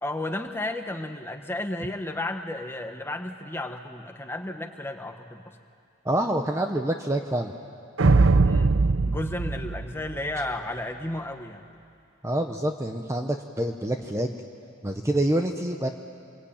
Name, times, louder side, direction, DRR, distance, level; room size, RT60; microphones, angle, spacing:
voice 1, 0.0-5.4 8.4-8.8 9.0-11.7, left 1 dB, 10° left, 5 dB, 1.3 m, -33 dB
voice 2, 6.0-7.5 12.2-14.3 14.8-15.9, right 1 dB, 15° right, 4 dB, 0.9 m, -26 dB
sound 1, 8.0-10.5, right 3 dB, 70° right, 0.7 m, -21 dB
26.5 x 23.0 x 8.8 m, 2.5 s
head